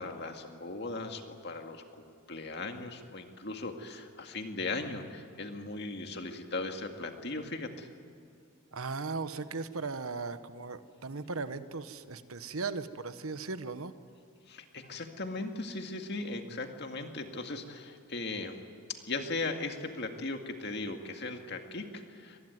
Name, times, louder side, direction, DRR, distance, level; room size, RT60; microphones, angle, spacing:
voice 1, 0.0-7.9 14.5-18.6 19.1-22.4, left 3 dB, 50° left, 5 dB, 2.1 m, -38 dB
voice 2, 8.7-13.9, right 4 dB, 80° right, 11 dB, 1.2 m, -37 dB
25.0 x 20.0 x 9.4 m, 2.5 s
head